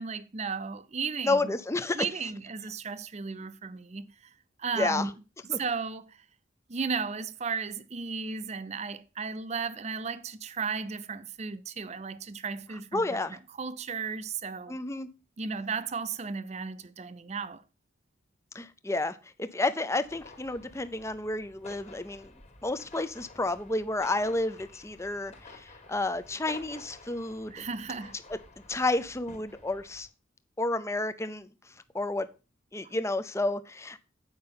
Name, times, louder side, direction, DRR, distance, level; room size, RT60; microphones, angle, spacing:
voice 1, 0.0-1.6 1.9-4.1 4.6-5.1 5.5-6.2 6.7-13.0 13.3-14.8 15.4-17.6 27.5-28.1 32.8-32.9, right 5 dB, 35° right, 0.5 m, -35 dB
voice 2, 1.2-2.1 4.8-5.1 5.5-5.6 12.9-13.4 14.7-15.1 18.5-22.3 22.6-27.6 28.7-30.1 30.6-31.5 31.9-32.3 32.7-34.0, left 2 dB, 15° left, 0.5 m, -31 dB
sound 1, 20.0-30.1, left 2 dB, 35° left, 1.7 m, -51 dB
8.8 x 5.3 x 5.6 m
head